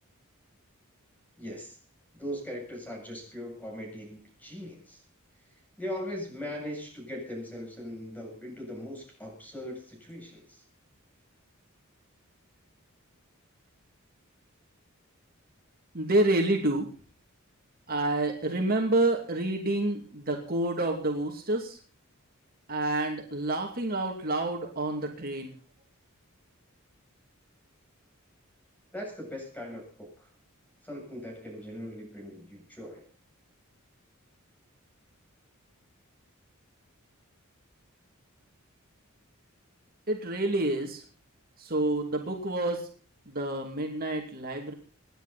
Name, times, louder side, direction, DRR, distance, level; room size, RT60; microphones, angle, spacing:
voice 1, 1.4-1.8 2.1-5.0 5.8-10.6 28.9-30.3 30.8-33.1, equal, 10° left, 1 dB, 7.8 m, -40 dB
voice 2, 15.9-16.9 17.9-21.8 22.7-25.5 40.1-41.0 41.6-42.9 43.3-44.7, right 2 dB, 45° right, 1 dB, 2.6 m, -28 dB
27.0 x 10.5 x 4.2 m, 0.41 s
head